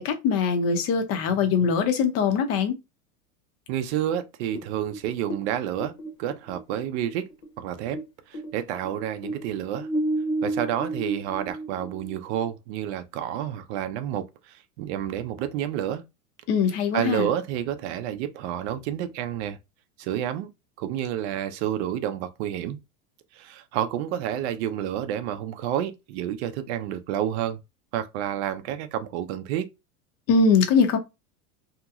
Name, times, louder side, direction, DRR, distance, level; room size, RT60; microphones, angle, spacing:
voice 1, 0.0-2.7 16.5-17.3 30.3-31.0, left 5 dB, 30° left, 0.6 m, -22 dB
voice 2, 3.7-5.9 6.2-7.3 7.6-8.0 8.3-9.9 10.4-16.0 16.9-19.6 20.0-20.5 20.8-22.8 23.3-27.6 27.9-29.7, right 10 dB, 50° right, 0.5 m, -29 dB
sound 1, 4.5-8.1 8.3-12.5, right 2 dB, 55° left, 1.0 m, -31 dB
2.9 x 2.8 x 2.3 m
supercardioid pair, 145°, 46 cm